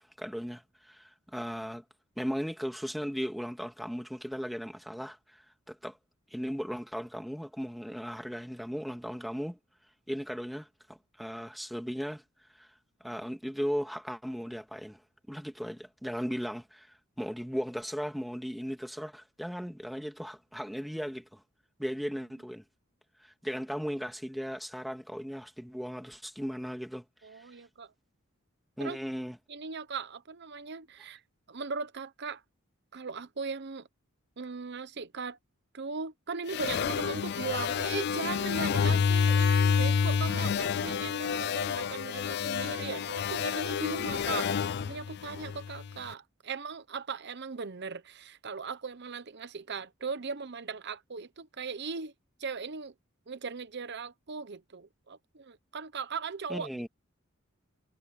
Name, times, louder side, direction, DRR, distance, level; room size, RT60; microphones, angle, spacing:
voice 1, 0.0-1.8 2.2-6.0 6.3-9.6 10.1-12.2 12.5-12.7 13.0-15.0 15.3-21.4 21.8-22.6 23.2-27.0 27.3-27.5 28.8-29.4 56.5-56.9, equal, ahead, 2.2 m, -37 dB
voice 2, 27.2-27.9 28.8-29.0 29.5-31.2 31.5-32.4 32.9-33.9 34.4-35.4 35.7-44.5 44.9-52.1 52.4-52.9 53.3-56.9, right 5 dB, 55° right, 0.9 m, -38 dB
sound 1, 36.5-45.9, left 6 dB, 50° left, 0.4 m, -29 dB
head